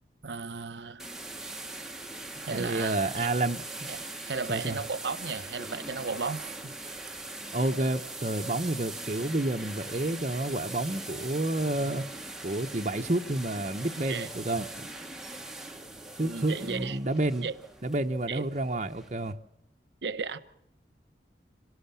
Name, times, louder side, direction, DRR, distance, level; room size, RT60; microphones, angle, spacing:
voice 1, 0.2-1.1 2.4-3.3 3.9-4.0 4.3-6.7 14.1-14.3 16.2-17.0 17.4-17.5 18.3-18.4 20.0-20.4, right 5 dB, 85° right, 0.8 m, -35 dB
sound 1, 1.0-19.3, right 2 dB, 5° right, 1.2 m, -41 dB
voice 2, 2.5-3.9 4.5-4.8 7.5-12.0 12.4-14.9 16.2-17.5 17.8-19.4, right 2 dB, 40° right, 1.0 m, -30 dB
26.5 x 17.5 x 7.0 m
head